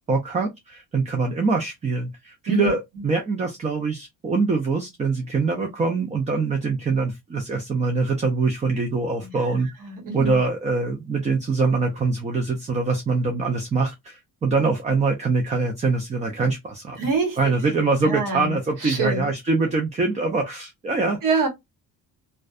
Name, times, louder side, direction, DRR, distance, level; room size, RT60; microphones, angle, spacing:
voice 1, 0.1-9.7 10.1-17.0 17.4-21.5, right 4 dB, 20° right, 0.4 m, -24 dB
voice 2, 9.8-10.4 17.0-17.5 18.0-18.5 18.8-19.3 21.2-21.5, right 4 dB, 55° right, 1.1 m, -25 dB
2.5 x 2.2 x 2.3 m
cardioid pair, 150°, 39 cm